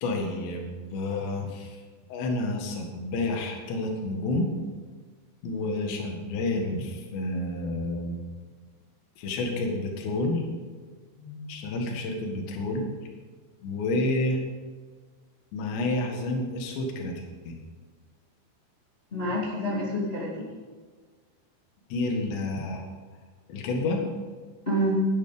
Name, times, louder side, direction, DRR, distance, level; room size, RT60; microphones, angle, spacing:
voice 1, 0.0-1.8 2.1-4.5 5.4-8.2 9.2-10.4 11.5-12.9 13.6-14.4 15.5-17.5 21.9-22.8 23.5-24.1, left 2 dB, 65° left, 1 dB, 3.8 m, -29 dB
voice 2, 19.1-20.5 24.6-25.1, equal, 25° left, -5 dB, 1.2 m, -28 dB
12.5 x 10.5 x 5.1 m, 1.5 s
omnidirectional pair, 5.7 m